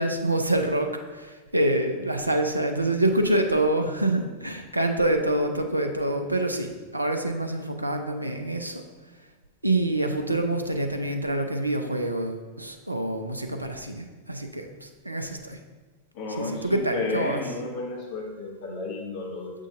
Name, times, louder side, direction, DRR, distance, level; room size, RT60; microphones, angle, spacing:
voice 1, 0.0-8.8 9.6-15.6 16.4-17.4, right 1 dB, 85° right, 5 dB, 0.5 m, -26 dB
voice 2, 16.1-19.5, left 3 dB, 45° left, -2 dB, 1.5 m, -32 dB
6.7 x 6.3 x 2.5 m, 1.3 s
figure-of-eight pair, 90°, 0 cm